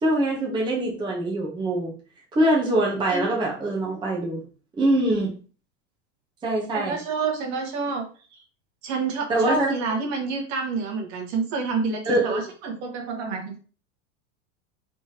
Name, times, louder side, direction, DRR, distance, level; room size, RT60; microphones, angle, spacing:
voice 1, 0.0-1.9 2.3-4.4 4.8-5.3 6.4-7.0 9.3-9.7 12.1-12.5, right 1 dB, 10° right, -2 dB, 0.8 m, -23 dB
voice 2, 6.7-8.0 8.3-8.4 8.8-13.6, right 4 dB, 45° right, 2 dB, 1.2 m, -28 dB
3.4 x 3.3 x 2.8 m, 0.38 s
supercardioid pair, 130°, 38 cm